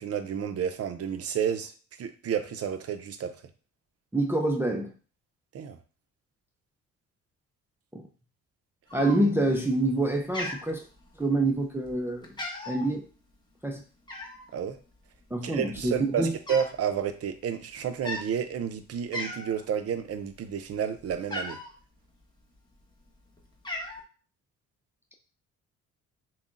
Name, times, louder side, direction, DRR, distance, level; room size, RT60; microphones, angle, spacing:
voice 1, 0.0-1.7 2.0-3.3 5.5-5.8 14.5-14.8 15.4-21.6, right 8 dB, 50° right, 8 dB, 0.6 m, -31 dB
voice 2, 4.1-4.9 7.9-8.0 8.9-10.8 11.2-12.4 12.7-13.0 13.6-13.8 15.3-16.4, right 2 dB, 10° right, 2 dB, 0.5 m, -26 dB
Cat, 8.9-9.5 9.9-10.1 10.3-11.4 11.8-12.0 12.2-12.9 14.1-14.5 15.3-15.4 15.6-16.8 17.1-17.3 17.9-18.3 18.8-18.9 19.1-19.6 20.0-21.7 22.5-23.1 23.4-24.0, left 1 dB, 15° left, 1.1 m, -37 dB
5.6 x 2.2 x 2.5 m, 0.38 s
cardioid pair, 90°, 30 cm